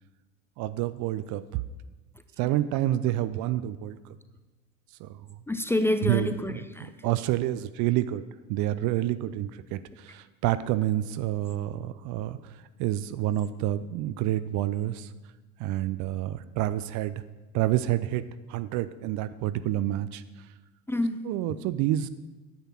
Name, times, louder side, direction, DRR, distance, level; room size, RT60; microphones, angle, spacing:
voice 1, 0.6-1.6 2.4-4.0 5.0-5.1 6.0-6.3 7.0-12.4 12.8-15.1 15.6-17.2 17.5-20.2 21.3-22.1, right 14 dB, 45° right, 14 dB, 0.5 m, -28 dB
voice 2, 5.5-7.1 20.9-21.2, left 1 dB, 5° left, 9 dB, 0.5 m, -28 dB
10.0 x 8.1 x 5.8 m, 1.2 s
figure-of-eight pair, 70°, 42 cm